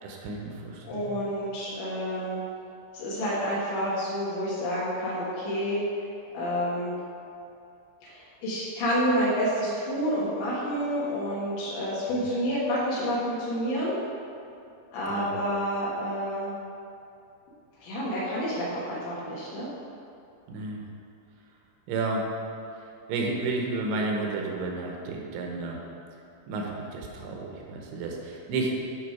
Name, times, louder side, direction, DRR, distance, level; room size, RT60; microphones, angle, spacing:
voice 1, 0.0-1.2 12.1-12.3 15.1-15.4 20.5-20.8 21.9-22.3 23.1-25.8 26.5-28.8, right 3 dB, 75° right, 0 dB, 3.0 m, -32 dB
voice 2, 0.8-2.4 2.9-5.8 6.3-6.9 8.0-14.0 14.9-16.5 17.8-19.7, equal, 70° left, -8 dB, 3.7 m, -29 dB
11.5 x 5.9 x 4.6 m, 2.7 s
omnidirectional pair, 5.7 m